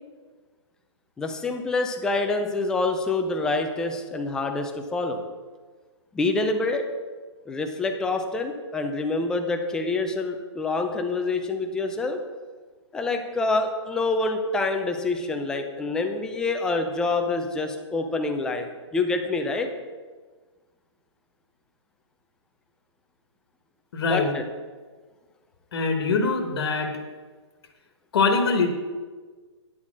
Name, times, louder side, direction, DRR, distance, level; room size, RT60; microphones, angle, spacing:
voice 1, 1.2-5.2 6.1-6.8 7.5-12.2 12.9-19.7 24.1-24.4, left 3 dB, 5° left, 5 dB, 0.4 m, -26 dB
voice 2, 23.9-24.3 25.7-27.0 28.1-28.7, left 4 dB, 55° left, 4 dB, 1.3 m, -23 dB
9.7 x 4.3 x 7.2 m, 1.4 s
hypercardioid pair, 155°, 16 cm